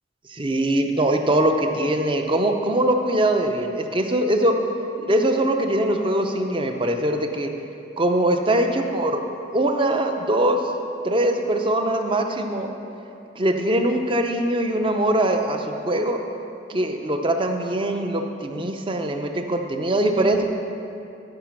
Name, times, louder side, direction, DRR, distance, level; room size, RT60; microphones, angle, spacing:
voice 1, 0.3-4.5 5.0-7.5 8.0-9.2 9.5-10.6 11.0-12.7 13.4-16.2 16.7-20.4, right 1 dB, 25° right, 5 dB, 0.6 m, -22 dB
11.5 x 5.1 x 5.9 m, 2.7 s
head